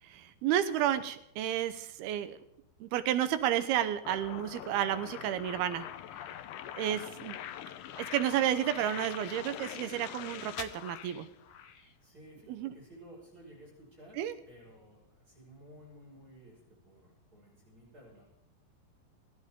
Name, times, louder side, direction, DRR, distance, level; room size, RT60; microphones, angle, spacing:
voice 1, 0.0-2.4 2.8-5.9 6.8-7.4 8.0-11.3 12.5-12.7 14.2-14.3, right 11 dB, 75° right, 12 dB, 2.7 m, -31 dB
sound 1, 4.0-11.8, left 11 dB, 80° left, 1.8 m, -43 dB
voice 2, 12.0-14.2 14.5-18.2, right 1 dB, 20° right, -3 dB, 6.0 m, -55 dB
27.5 x 10.5 x 3.7 m, 0.84 s
omnidirectional pair, 4.8 m